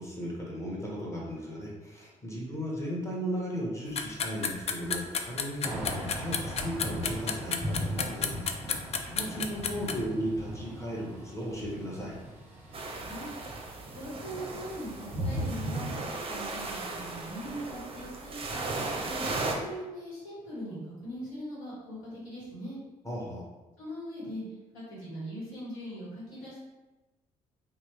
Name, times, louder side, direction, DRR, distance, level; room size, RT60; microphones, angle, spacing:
voice 1, 0.0-8.4 9.0-12.1 23.0-23.4, equal, 15° left, -4 dB, 1.2 m, -36 dB
sound 1, 3.9-9.9, left 6 dB, 35° left, 0.3 m, -31 dB
Thunder / Rain, 5.6-16.0, right 1 dB, 10° right, 1.0 m, -38 dB
sound 2, 12.7-19.5, right 3 dB, 30° right, 0.6 m, -37 dB
voice 2, 13.9-15.9 16.3-18.6 19.0-19.2 19.5-22.8 23.8-24.4 24.7-26.6, equal, 80° left, -7 dB, 1.2 m, -40 dB
2.9 x 2.2 x 3.2 m, 1.1 s
hypercardioid pair, 45°, 18 cm